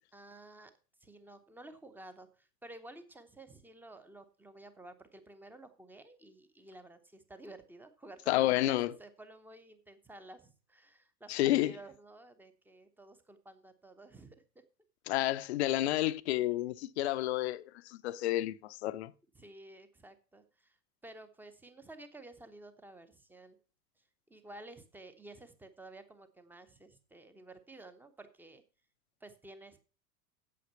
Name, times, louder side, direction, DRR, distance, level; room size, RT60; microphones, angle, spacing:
voice 1, 0.1-0.7 1.0-11.3 11.6-14.6 19.3-20.8 21.0-23.6 24.3-28.6 29.2-29.8, right 2 dB, 5° right, 0.7 m, -52 dB
voice 2, 8.3-8.9 11.3-11.7 15.1-17.6 17.9-19.1, left 15 dB, 45° left, 0.6 m, -30 dB
8.5 x 7.9 x 5.6 m
figure-of-eight pair, 95°, 49 cm